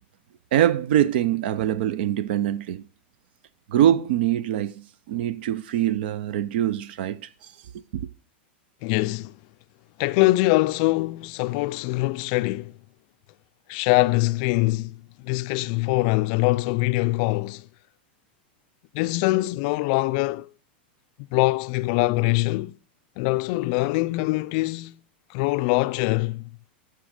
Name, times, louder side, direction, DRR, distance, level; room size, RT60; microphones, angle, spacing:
voice 1, 0.5-2.8 3.7-7.3 7.9-8.1, right 11 dB, 65° right, 0.7 m, -23 dB
voice 2, 8.8-9.3 10.0-12.7 13.7-15.0 15.2-17.6 18.9-20.5 21.3-22.7 23.2-25.0 25.3-26.5, left 21 dB, 45° left, 0.4 m, -23 dB
13.5 x 6.1 x 4.9 m
supercardioid pair, 155°, 6 cm